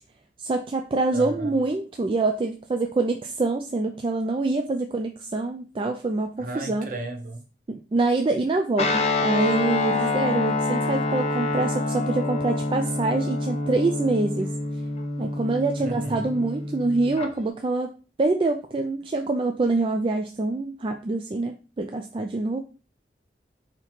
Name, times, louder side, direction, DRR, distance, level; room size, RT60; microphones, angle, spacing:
voice 1, 0.4-6.9 7.7-14.5 15.2-17.9 18.2-22.6, right 3 dB, 30° right, 0.3 m, -25 dB
voice 2, 1.1-1.5 6.4-7.4 15.8-16.3, right 2 dB, 50° right, 0.8 m, -34 dB
Guitar, 8.8-17.3, left 2 dB, 35° left, 0.5 m, -27 dB
4.1 x 2.9 x 4.3 m
head